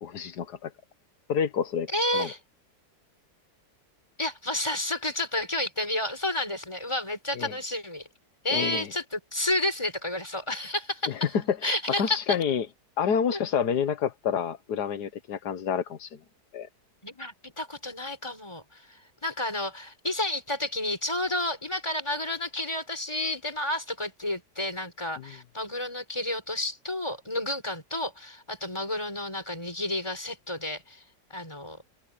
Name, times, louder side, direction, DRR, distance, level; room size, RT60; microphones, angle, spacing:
voice 1, 0.0-0.7 1.3-2.3 7.3-7.5 8.5-8.9 11.1-11.2 11.5-12.7 13.0-16.2 16.5-16.7 25.2-25.3, left 7 dB, 75° left, 1.7 m, -28 dB
voice 2, 1.9-2.4 4.2-8.1 8.4-11.3 11.6-12.4 13.3-13.4 17.0-31.0 31.3-31.8, left 1 dB, 15° left, 5.3 m, -31 dB
omnidirectional pair, 1.7 m